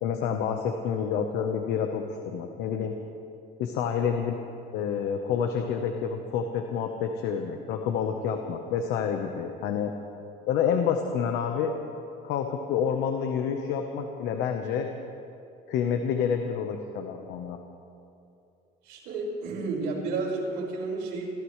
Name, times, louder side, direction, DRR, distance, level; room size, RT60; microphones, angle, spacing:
voice 1, 0.0-3.0 3.6-4.4 4.7-9.9 10.5-11.7 12.2-14.9 15.7-17.6, left 7 dB, 85° left, 4 dB, 1.1 m, -28 dB
voice 2, 18.8-21.3, right 3 dB, 85° right, -3 dB, 5.1 m, -31 dB
27.5 x 15.5 x 3.3 m, 2.6 s
cardioid pair, 110°, 17 cm